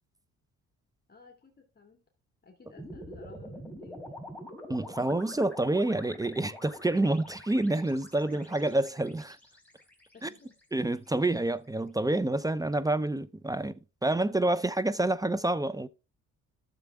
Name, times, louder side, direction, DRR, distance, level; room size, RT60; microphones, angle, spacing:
voice 1, 1.1-2.0 2.4-4.3 10.1-10.5, left 4 dB, 30° left, 2.2 m, -55 dB
sound 1, 2.8-11.1, left 1 dB, 5° left, 3.6 m, -46 dB
voice 2, 4.7-9.4 10.2-10.3 10.7-15.9, right 2 dB, 10° right, 0.6 m, -28 dB
13.0 x 7.0 x 3.5 m
cardioid pair, 90°, 30 cm